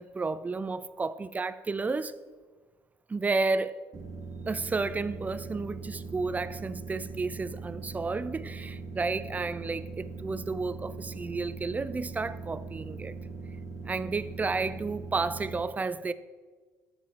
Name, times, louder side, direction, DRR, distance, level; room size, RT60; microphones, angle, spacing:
voice 1, 0.0-2.1 3.1-3.8 4.5-13.1 13.8-16.1, right 3 dB, 20° right, 0.4 m, -32 dB
sound 1, 3.9-15.6, right 4 dB, 50° right, 1.4 m, -41 dB
7.6 x 6.4 x 4.1 m
supercardioid pair, 75°, 7 cm